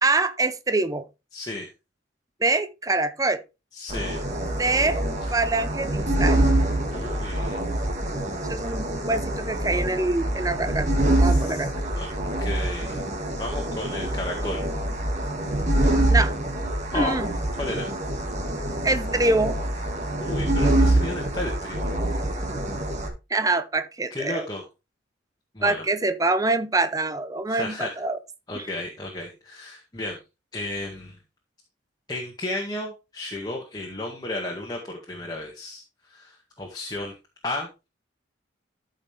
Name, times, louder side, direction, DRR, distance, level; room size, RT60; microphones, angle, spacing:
voice 1, 0.0-1.0 2.4-3.4 4.6-5.0 5.3-6.4 8.5-10.9 11.2-11.9 16.1-16.3 16.9-17.3 18.8-19.6 23.3-24.5 25.6-28.2 28.5-28.7, right 2 dB, 20° right, 0.7 m, -25 dB
voice 2, 1.3-1.7 3.7-4.2 6.9-7.6 11.2-11.7 12.0-12.1 12.4-13.0 13.4-14.7 16.9-17.2 17.6-17.9 20.2-21.9 24.1-24.6 25.6-25.8 27.5-28.0 28.5-30.2 30.5-31.2 32.1-35.8 36.1-37.1 37.4-37.9, left 2 dB, 20° left, 1.8 m, -33 dB
sound 1, 3.9-23.1, right 1 dB, 35° right, 2.0 m, -25 dB
13.5 x 5.6 x 3.4 m
head